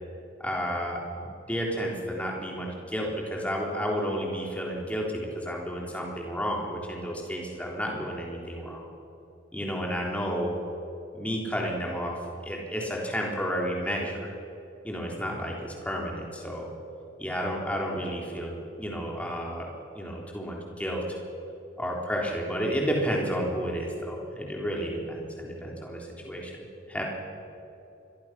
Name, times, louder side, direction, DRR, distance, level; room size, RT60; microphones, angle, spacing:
voice 1, 0.4-8.9 9.5-10.6 11.1-14.3 14.8-16.7 17.2-21.2 21.8-27.0, equal, 5° left, -1 dB, 3.6 m, -31 dB
27.5 x 23.5 x 6.1 m, 2.9 s
head